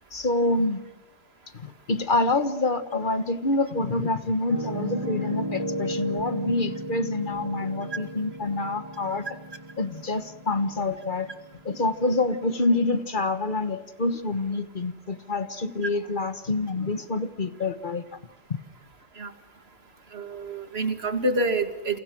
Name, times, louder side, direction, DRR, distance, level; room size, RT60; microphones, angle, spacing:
voice 1, 0.1-0.8 1.5-9.2 9.8-11.3 11.6-18.0, left 2 dB, 45° left, 11 dB, 1.5 m, -26 dB
Piano, 4.5-12.4, right 1 dB, 30° right, 1.6 m, -35 dB
voice 2, 20.1-22.0, right 2 dB, 60° right, 7 dB, 2.5 m, -27 dB
29.0 x 28.0 x 6.2 m, 0.94 s
omnidirectional pair, 1.2 m